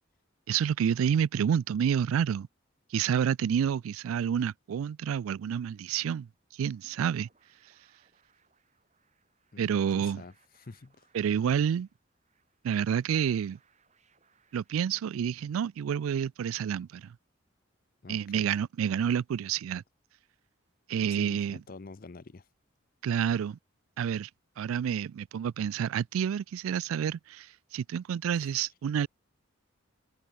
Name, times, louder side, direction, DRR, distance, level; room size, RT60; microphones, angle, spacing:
voice 1, 0.5-2.5 2.9-6.3 6.5-7.3 9.6-10.2 11.1-11.9 12.6-13.6 14.5-17.2 18.1-19.8 20.9-21.6 23.0-23.6 24.0-24.3 24.6-29.1, right 8 dB, 85° right, 0.3 m, -29 dB
sound 1, 6.4-15.8, right 6 dB, 35° right, 6.3 m, -70 dB
voice 2, 9.5-11.1 18.0-18.5 21.0-22.4 28.4-28.6, left 3 dB, 45° left, 0.6 m, -48 dB
open air
head